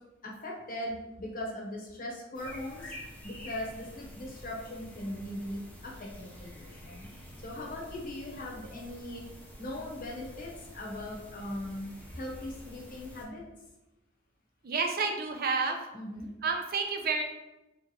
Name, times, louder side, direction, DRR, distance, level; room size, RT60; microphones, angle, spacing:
voice 1, 0.2-2.9 3.2-7.1 7.4-9.2 9.6-13.4 15.9-16.3, left 1 dB, 45° left, -1 dB, 1.0 m, -39 dB
sound 1, 2.3-13.2, left 1 dB, 10° left, 0.8 m, -48 dB
voice 2, 14.6-15.9 16.4-17.2, right 4 dB, 50° right, 3 dB, 0.6 m, -30 dB
3.3 x 3.0 x 4.7 m, 0.99 s
head